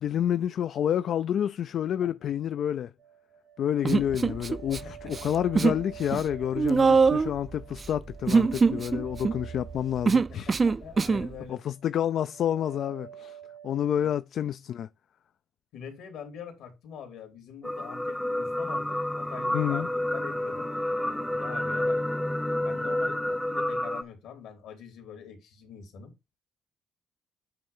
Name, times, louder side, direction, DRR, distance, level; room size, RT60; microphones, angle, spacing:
voice 1, 0.0-2.9 3.6-10.6 11.5-13.4 13.6-14.9 19.5-19.9, left 10 dB, 70° left, 0.4 m, -29 dB
sound 1, 3.0-11.1 11.4-12.0 12.3-14.0, right 10 dB, 75° right, 1.9 m, -49 dB
Human voice, 3.8-4.8 5.1-5.8 6.1-11.3, right 4 dB, 35° right, 0.4 m, -23 dB
voice 2, 4.8-5.3 10.5-11.6 14.0-14.1 15.7-20.7 21.3-22.0 22.6-26.1, left 7 dB, 85° left, 2.8 m, -44 dB
sound 2, 17.6-24.0, left 1 dB, 5° left, 0.7 m, -29 dB
8.8 x 3.1 x 5.4 m
cardioid pair, 90°, 0 cm